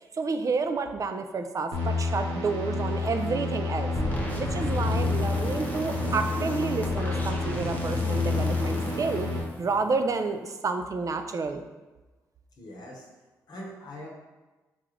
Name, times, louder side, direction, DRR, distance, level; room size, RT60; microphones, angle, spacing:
voice 1, 0.1-3.9 4.4-9.3 9.6-11.6, right 4 dB, 45° right, 7 dB, 0.4 m, -30 dB
sound 1, 1.7-9.4, left 3 dB, 80° right, 0.8 m, -29 dB
sound 2, 4.0-10.1, left 1 dB, 20° left, 0.8 m, -34 dB
voice 2, 12.6-13.1 13.5-14.1, equal, 60° left, -1 dB, 0.9 m, -42 dB
3.7 x 2.4 x 3.2 m, 1.2 s
hypercardioid pair, 40°, 8 cm